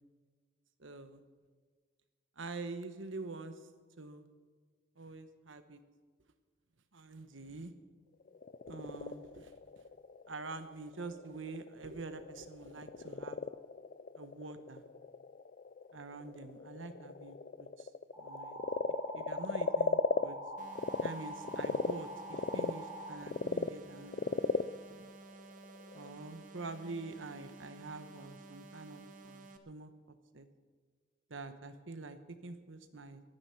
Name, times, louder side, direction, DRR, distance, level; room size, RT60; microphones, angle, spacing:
voice 1, 0.8-1.2 2.4-3.6 4.0-4.2 5.0-5.8 6.9-7.7 8.7-9.5 10.3-13.4 14.2-14.8 15.9-17.9 18.2-18.7 19.1-20.4 21.0-25.1 25.9-30.5 31.3-33.2, right 3 dB, 80° right, 10 dB, 1.2 m, -46 dB
Frog, 8.2-21.1 21.4-26.1, left 4 dB, 45° left, 0.4 m, -37 dB
sound 1, 18.1-23.1, right 1 dB, 5° right, 4.5 m, -45 dB
sound 2, 20.6-29.6, right 3 dB, 40° right, 1.1 m, -53 dB
22.5 x 9.9 x 5.9 m, 1.5 s
head